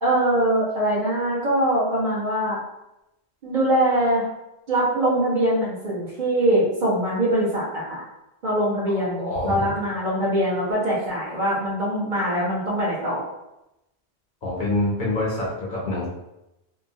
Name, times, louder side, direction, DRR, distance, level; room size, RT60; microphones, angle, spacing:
voice 1, 0.0-2.6 3.4-4.3 4.7-8.0 8.4-13.2, right 1 dB, 45° right, -7 dB, 1.0 m, -23 dB
voice 2, 8.9-9.7 14.4-16.1, left 2 dB, 55° left, -6 dB, 0.7 m, -26 dB
2.8 x 2.2 x 2.6 m, 0.91 s
omnidirectional pair, 1.1 m